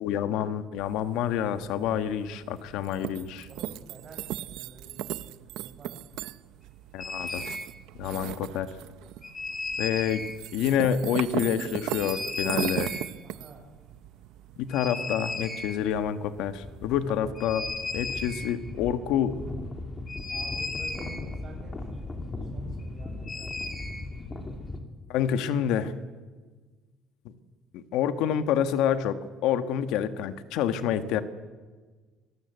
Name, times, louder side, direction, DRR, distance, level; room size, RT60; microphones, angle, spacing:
voice 1, 0.0-3.5 6.9-7.4 8.0-8.7 9.8-12.9 14.6-17.7 17.9-19.4 25.1-26.0 27.3-27.4 27.7-29.2 29.4-31.2, left 9 dB, 80° left, 11 dB, 1.6 m, -28 dB
sound 1, 0.8-17.2, right 14 dB, 75° right, 0.7 m, -38 dB
voice 2, 3.4-6.0 13.2-13.6 20.3-23.6 29.5-29.8, right 3 dB, 35° right, 2 dB, 7.2 m, -50 dB
sound 2, 7.0-7.7 9.2-10.4 12.0-13.1 14.7-16.0 16.3-16.4 16.5-24.8, left 3 dB, 20° left, 2.8 m, -35 dB
26.0 x 19.5 x 8.1 m, 1.4 s
cardioid pair, 160°, 0 cm